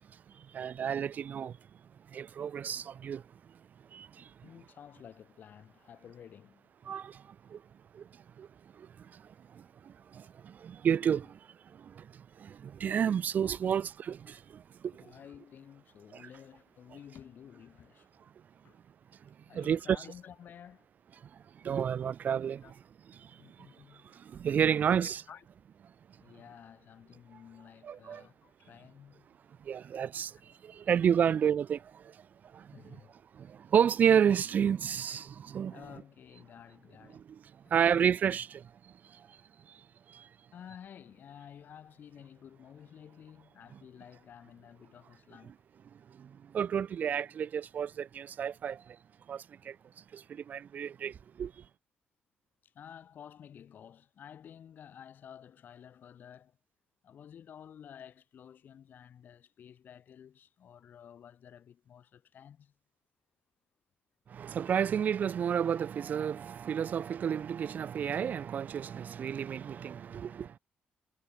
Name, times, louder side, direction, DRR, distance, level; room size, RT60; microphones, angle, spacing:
voice 1, 0.1-1.6 2.1-3.2 3.9-4.3 6.8-7.6 7.9-8.5 8.7-15.1 16.1-16.3 19.2-20.0 21.2-22.7 23.1-25.2 27.8-28.3 29.6-32.7 33.3-35.8 37.1-37.4 37.7-39.4 39.7-40.3 43.7-43.8 45.9-49.0 49.3-51.6 64.3-70.6, right 8 dB, 50° right, 0.7 m, -32 dB
voice 2, 4.4-6.7 11.7-11.9 14.9-18.1 18.6-18.8 19.5-20.9 22.0-22.1 22.6-22.7 23.4-24.2 25.0-25.4 26.2-29.3 30.3-30.4 32.7-33.1 35.7-37.2 37.6-37.7 40.5-45.5 52.6-56.6 57.0-62.7, left 9 dB, 55° left, 7.4 m, -52 dB
cardioid pair, 140°, 4 cm